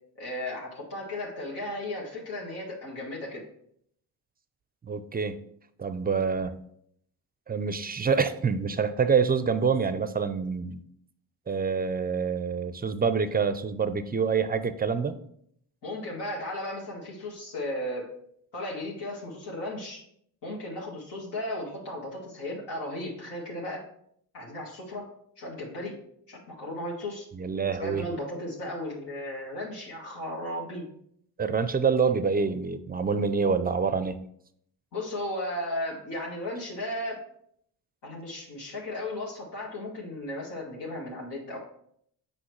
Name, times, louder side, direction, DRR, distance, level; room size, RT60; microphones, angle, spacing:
voice 1, 0.2-3.4 15.8-18.1 18.5-20.0 20.4-23.8 24.3-25.1 25.4-25.9 26.3-27.3 27.8-30.8 34.9-37.2 38.0-41.6, left 1 dB, 75° left, -4 dB, 1.7 m, -35 dB
voice 2, 4.8-5.4 5.8-6.6 7.5-10.8 11.5-15.2 27.3-28.1 31.4-34.2, right 5 dB, 25° right, 12 dB, 0.5 m, -26 dB
6.2 x 4.9 x 3.2 m, 0.69 s
supercardioid pair, 65°, 41 cm